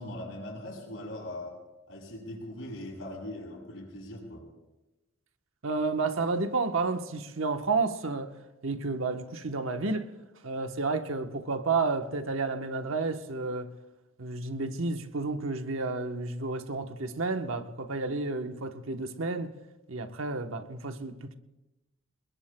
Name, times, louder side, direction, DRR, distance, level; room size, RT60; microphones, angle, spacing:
voice 1, 0.0-1.6 1.9-4.5, left 1 dB, 80° left, 6.6 m, -40 dB
voice 2, 5.6-8.3 8.6-10.1 10.4-13.7 14.2-19.5 19.9-21.3, right 3 dB, 80° right, 1.1 m, -31 dB
29.5 x 21.0 x 2.3 m
head